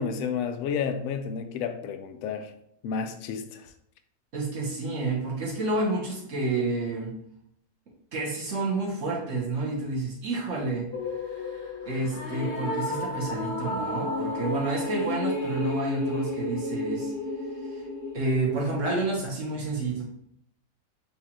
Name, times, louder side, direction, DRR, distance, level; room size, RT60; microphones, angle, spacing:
voice 1, 0.0-2.5 2.8-3.7, left 6 dB, 75° left, 7 dB, 1.0 m, -31 dB
voice 2, 4.3-7.1 8.1-10.9 11.9-17.1 18.1-20.0, right 2 dB, 60° right, -3 dB, 1.4 m, -29 dB
sound 1, 10.9-19.2, left 2 dB, 55° left, 1.2 m, -32 dB
7.2 x 2.5 x 2.9 m, 0.73 s
omnidirectional pair, 1.5 m